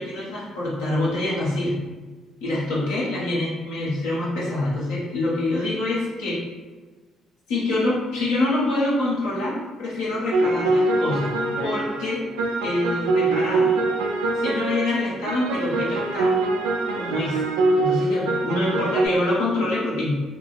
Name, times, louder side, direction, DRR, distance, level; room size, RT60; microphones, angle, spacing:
voice 1, 0.0-1.8 2.4-6.4 7.5-11.3 11.6-12.2 12.6-13.7 14.3-16.3 16.9-17.4 17.8-20.1, left 2 dB, 85° left, -7 dB, 1.2 m, -25 dB
sound 1, 10.3-19.1, right 2 dB, 90° right, 0.4 m, -23 dB
3.5 x 2.2 x 3.3 m, 1.3 s
supercardioid pair, 60°, 0 cm